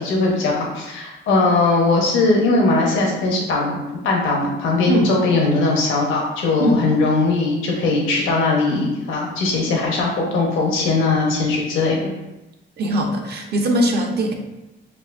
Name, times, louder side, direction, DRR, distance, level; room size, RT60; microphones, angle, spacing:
voice 1, 0.0-12.1, left 3 dB, 85° left, -1 dB, 1.0 m, -19 dB
voice 2, 12.8-14.3, right 1 dB, 55° right, 1 dB, 0.9 m, -20 dB
7.3 x 2.5 x 2.5 m, 1.0 s
cardioid pair, 90°, 20 cm